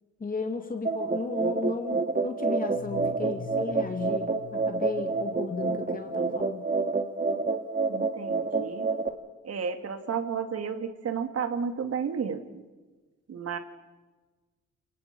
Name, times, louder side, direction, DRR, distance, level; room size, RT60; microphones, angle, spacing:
voice 1, 0.2-6.7, left 4 dB, 30° left, 5 dB, 2.1 m, -35 dB
sound 1, 0.8-9.1, right 4 dB, 25° right, 2.2 m, -28 dB
sound 2, 2.7-6.4, left 5 dB, 65° left, 2.6 m, -45 dB
voice 2, 7.9-8.9 9.4-12.6 13.3-13.6, right 6 dB, 55° right, 7 dB, 2.8 m, -32 dB
28.5 x 19.5 x 5.6 m, 1.3 s
cardioid pair, 90°, 30 cm